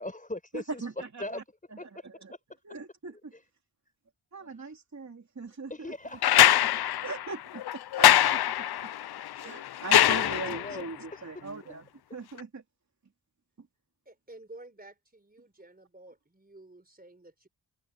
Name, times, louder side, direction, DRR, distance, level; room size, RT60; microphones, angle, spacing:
voice 1, 0.0-0.8 1.2-1.4 1.8-2.4 5.7-6.6 10.2-10.8, left 2 dB, 20° left, 5.6 m, -40 dB
voice 2, 0.5-1.4 1.7-2.3 2.6-3.3 4.3-5.7 7.0-8.9 9.2-12.6 13.6-13.7, right 3 dB, 40° right, 2.7 m, -40 dB
sound 1, 6.2-10.8 12.4-12.5, left 12 dB, 65° left, 0.5 m, -23 dB
voice 3, 14.1-17.5, right 2 dB, 20° right, 3.9 m, -51 dB
wide cardioid pair, 75°, 41 cm